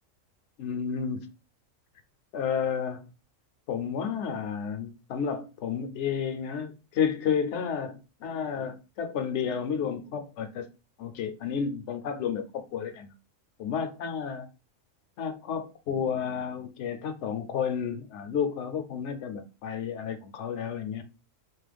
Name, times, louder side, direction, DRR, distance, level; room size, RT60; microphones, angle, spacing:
voice 1, 0.6-1.3 2.3-3.0 3.7-10.7 11.0-13.1 13.6-14.5 15.2-21.0, left 7 dB, 65° left, 0.8 m, -31 dB
3.0 x 2.1 x 3.3 m
omnidirectional pair, 1.4 m